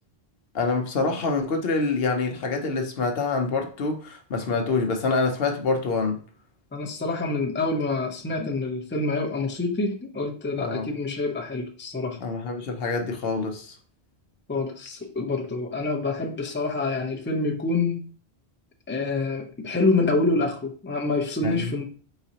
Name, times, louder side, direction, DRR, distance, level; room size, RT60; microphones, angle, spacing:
voice 1, 0.5-6.2 10.6-10.9 12.2-13.8 21.4-21.7, left 3 dB, 70° left, 0.9 m, -26 dB
voice 2, 6.7-12.2 14.5-18.0 18.9-21.8, left 3 dB, 15° left, 0.5 m, -26 dB
4.0 x 3.9 x 2.8 m
omnidirectional pair, 1.1 m